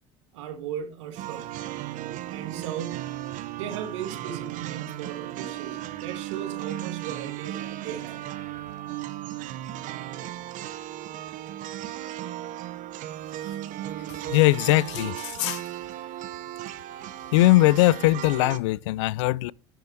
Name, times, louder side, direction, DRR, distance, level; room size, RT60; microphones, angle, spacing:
voice 1, 0.3-1.5 2.3-3.2 3.6-8.2 8.6-8.7, right 9 dB, 85° right, 1.8 m, -37 dB
sound 1, 1.2-18.6, right 13 dB, 60° right, 1.0 m, -36 dB
voice 2, 14.3-15.6 17.3-19.5, left 18 dB, 85° left, 0.4 m, -20 dB
10.0 x 6.4 x 4.3 m
supercardioid pair, 85°, 15 cm